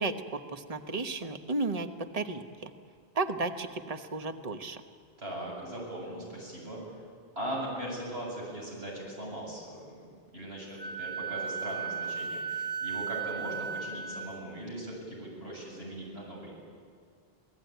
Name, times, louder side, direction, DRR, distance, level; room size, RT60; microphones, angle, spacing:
voice 1, 0.0-2.7 3.1-4.8, right 3 dB, 40° right, 8 dB, 1.2 m, -33 dB
voice 2, 5.2-6.8 7.4-10.0 10.3-16.5, right 1 dB, 90° right, -3 dB, 8.1 m, -39 dB
Wind instrument woodwind instrument, 10.8-14.3, right 6 dB, 35° left, 1.0 m, -35 dB
27.5 x 18.5 x 9.3 m, 2.3 s
omnidirectional pair, 1.0 m